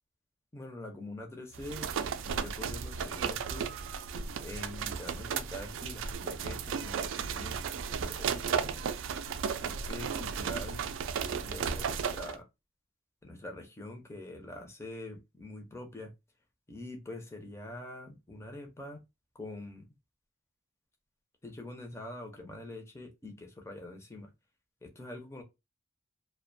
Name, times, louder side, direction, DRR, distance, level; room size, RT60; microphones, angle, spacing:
voice 1, 0.5-1.9 2.3-3.7 4.4-7.6 7.9-8.8 9.6-10.9 11.4-12.5 13.2-16.1 16.7-19.0 19.4-19.8 21.4-24.3 24.8-25.4, left 1 dB, 15° left, 0.5 m, -44 dB
sound 1, 1.5-12.4, right 6 dB, 75° right, 0.3 m, -34 dB
2.4 x 2.2 x 2.5 m
head